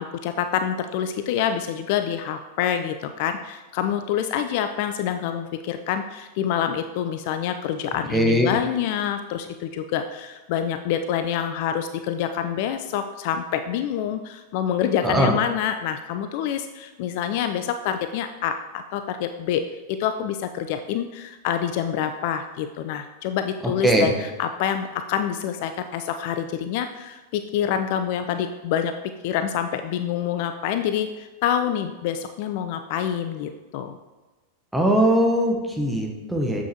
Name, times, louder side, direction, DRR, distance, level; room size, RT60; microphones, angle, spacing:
voice 1, 0.0-19.6 19.9-28.9 29.2-34.0, left 9 dB, 50° left, 8 dB, 0.3 m, -27 dB
voice 2, 8.1-8.5 15.0-15.4 23.8-24.1 34.7-36.6, right 1 dB, 5° right, 0 dB, 1.1 m, -20 dB
7.1 x 6.0 x 2.9 m, 1.2 s
figure-of-eight pair, 90°, 0 cm